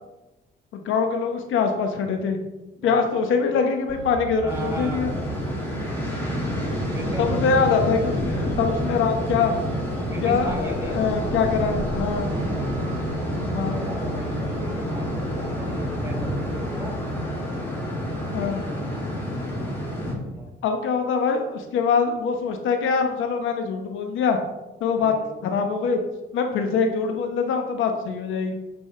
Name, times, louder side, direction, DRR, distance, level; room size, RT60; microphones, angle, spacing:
voice 1, 0.7-2.4 2.8-5.1 7.2-9.5 10.2-12.3 13.5-13.8 18.3-18.6 20.6-24.4 24.8-25.1 25.4-26.0 26.3-28.5, left 5 dB, 85° left, 5 dB, 1.0 m, -23 dB
Truck, 3.9-17.2, right 4 dB, 80° right, 0.9 m, -36 dB
voice 2, 4.4-5.1 6.9-7.4 10.1-11.0 13.5-17.0 18.3-18.7 20.2-20.5 25.0-25.3, equal, 15° right, -2 dB, 2.8 m, -36 dB
sound 1, 4.5-20.1, left 1 dB, 10° left, 2.6 m, -28 dB
8.7 x 5.4 x 3.3 m, 1.0 s
cardioid pair, 90°, 20 cm